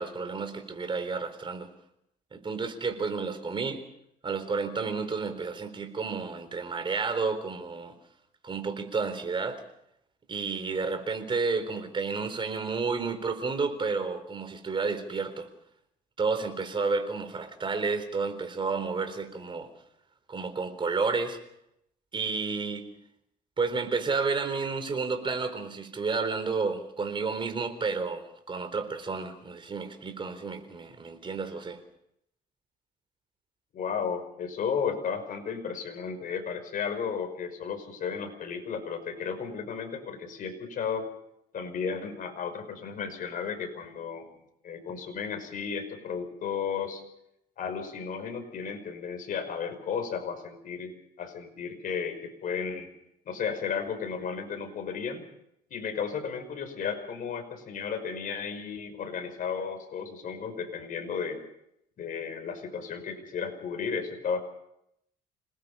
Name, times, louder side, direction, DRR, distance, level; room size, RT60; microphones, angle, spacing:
voice 1, 0.0-1.7 2.3-3.8 4.2-7.9 8.4-9.6 10.3-15.5 16.2-19.7 20.3-21.4 22.1-22.9 23.6-31.8, right 4 dB, 30° right, 8 dB, 4.0 m, -31 dB
voice 2, 33.7-41.1 41.5-44.4 44.6-47.0 47.6-50.9 51.2-52.9 53.3-55.2 55.7-61.4 62.0-64.4, left 6 dB, 55° left, 5 dB, 5.5 m, -34 dB
27.5 x 19.5 x 5.6 m, 0.78 s
cardioid pair, 110°, 17 cm